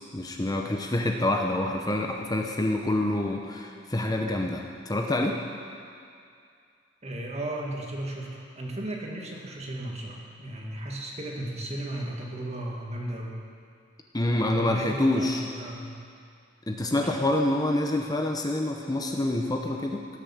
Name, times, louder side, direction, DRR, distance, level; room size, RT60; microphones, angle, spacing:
voice 1, 0.1-5.4 14.1-15.4 16.7-20.2, left 1 dB, 20° left, 2 dB, 0.7 m, -27 dB
voice 2, 7.0-13.4 14.5-15.9 17.0-17.3, right 1 dB, 35° right, -1 dB, 2.0 m, -35 dB
17.0 x 7.1 x 7.3 m, 2.3 s
head